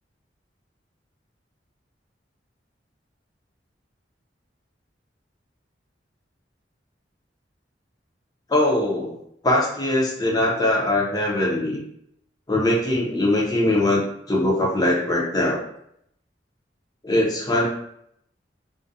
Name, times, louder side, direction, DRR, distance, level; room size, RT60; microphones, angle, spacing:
voice 1, 8.5-9.2 9.4-11.8 12.5-15.6 17.0-17.7, left 1 dB, 20° left, -3 dB, 0.6 m, -21 dB
2.4 x 2.1 x 2.6 m, 0.73 s
head